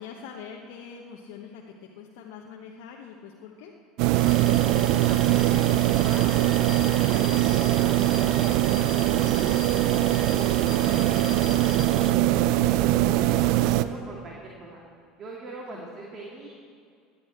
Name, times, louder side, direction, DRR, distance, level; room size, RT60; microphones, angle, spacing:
voice 1, 0.0-1.6 1.9-3.7 9.9-10.4 15.7-15.9, left 7 dB, 65° left, 0 dB, 1.1 m, -43 dB
sound 1, 4.0-13.8, right 14 dB, 65° right, 0.5 m, -22 dB
Alarm, 4.1-12.1, left 5 dB, 25° left, 1.1 m, -40 dB
voice 2, 4.4-8.5 10.9-14.8 15.2-16.5, right 2 dB, 40° right, -2 dB, 2.4 m, -42 dB
18.5 x 11.5 x 4.4 m, 2.2 s
hypercardioid pair, 75°, 0 cm